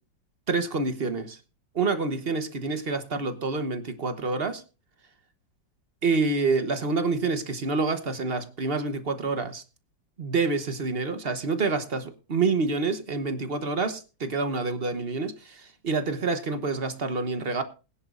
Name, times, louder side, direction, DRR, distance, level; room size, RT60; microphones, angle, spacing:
voice 1, 0.5-1.4 1.7-4.6 6.0-9.6 10.2-17.6, right 4 dB, 40° right, 1.0 m, -27 dB
21.0 x 10.5 x 2.5 m
omnidirectional pair, 2.0 m